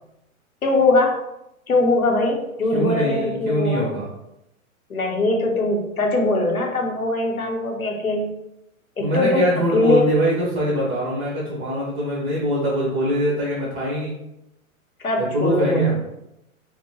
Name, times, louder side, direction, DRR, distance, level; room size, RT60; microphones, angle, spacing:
voice 1, 0.6-1.1 1.7-3.8 4.9-8.3 9.0-10.0 15.0-15.9, left 2 dB, 85° left, 1 dB, 0.9 m, -21 dB
voice 2, 2.7-4.1 9.0-14.1 15.3-16.0, equal, 35° right, -6 dB, 1.2 m, -23 dB
4.5 x 2.1 x 2.9 m, 0.86 s
figure-of-eight pair, 110°, 42 cm